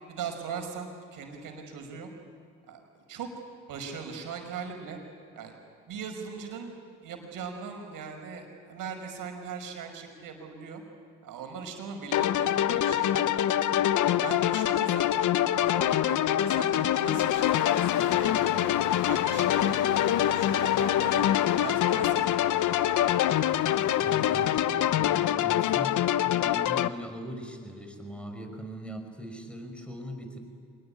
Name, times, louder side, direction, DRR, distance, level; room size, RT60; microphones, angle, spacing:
voice 1, 0.1-2.1 2.7-3.3 3.7-5.0 5.3-5.5 5.9-6.7 7.0-10.8 11.2-13.7 14.2-18.7 19.1-21.3 21.6-22.7, right 6 dB, 70° right, 4 dB, 5.6 m, -40 dB
sound 1, 12.1-26.9, left 11 dB, 60° left, 0.9 m, -25 dB
Engine starting, 16.5-24.7, left 10 dB, 85° left, 1.7 m, -36 dB
voice 2, 24.0-30.4, equal, 5° left, 5 dB, 5.5 m, -40 dB
25.5 x 20.5 x 10.0 m, 2.3 s
supercardioid pair, 75°, 34 cm